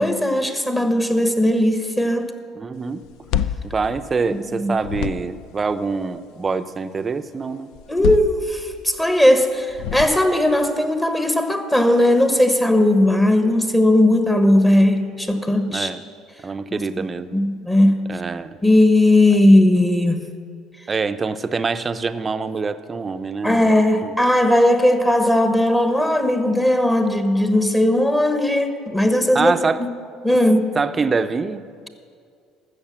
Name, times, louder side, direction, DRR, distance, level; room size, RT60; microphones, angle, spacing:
voice 1, 0.0-2.3 4.5-4.7 7.9-15.9 16.7-17.0 17.3-18.0 18.6-20.2 23.4-29.5 29.8-29.9 30.2-30.7, left 1 dB, 15° left, 7 dB, 1.1 m, -17 dB
voice 2, 2.6-3.0 3.7-7.7 15.7-16.0 16.4-17.4 18.1-18.6 20.9-23.7 24.0-24.1 29.3-29.8 30.7-31.6, right 4 dB, 30° right, 11 dB, 0.6 m, -25 dB
sound 1, 3.0-4.5 4.8-5.6 7.7-9.0 9.7-10.5, left 9 dB, 75° left, 0.4 m, -27 dB
14.0 x 6.7 x 7.3 m, 2.3 s
supercardioid pair, 80°, 0 cm